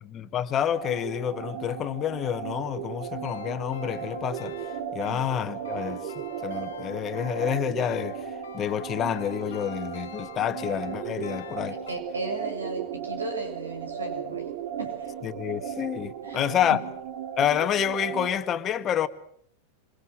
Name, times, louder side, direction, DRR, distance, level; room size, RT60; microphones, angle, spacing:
voice 1, 0.0-4.5 4.9-11.8 15.2-16.8 17.4-19.1, left 10 dB, 30° left, 1.9 m, -28 dB
sound 1, 0.7-18.4, right 9 dB, 50° right, 2.7 m, -36 dB
sound 2, 3.2-12.0, left 9 dB, 60° left, 1.5 m, -44 dB
voice 2, 11.7-15.1 16.2-16.8, right 2 dB, 75° right, 6.8 m, -36 dB
27.5 x 27.0 x 7.7 m
figure-of-eight pair, 90°, 0 cm